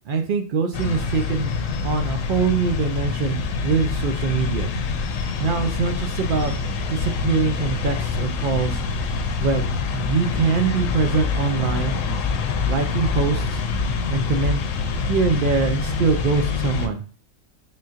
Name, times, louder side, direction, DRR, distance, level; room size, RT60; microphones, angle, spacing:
voice 1, 0.1-1.5 1.8-3.4 3.6-4.7 5.4-6.5 6.9-8.8 9.4-12.0 12.7-13.6 14.1-14.6 14.9-17.0, right 5 dB, 65° right, 5 dB, 0.5 m, -23 dB
sound 1, 0.7-16.9, left 4 dB, 75° left, 0.9 m, -25 dB
4.0 x 3.7 x 2.4 m, 0.39 s
omnidirectional pair, 1.4 m